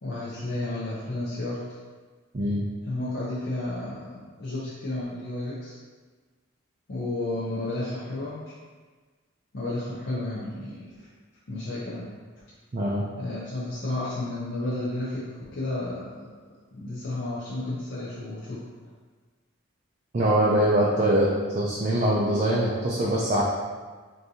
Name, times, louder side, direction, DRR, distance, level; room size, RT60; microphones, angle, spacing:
voice 1, 0.0-1.6 2.9-5.8 6.9-8.4 9.5-11.1 11.5-12.1 13.2-18.9, left 2 dB, 50° left, -7 dB, 0.5 m, -32 dB
voice 2, 12.7-13.0 20.1-21.3 21.5-23.4, right 1 dB, 35° right, -5 dB, 0.4 m, -23 dB
3.5 x 2.6 x 2.7 m, 1.4 s
head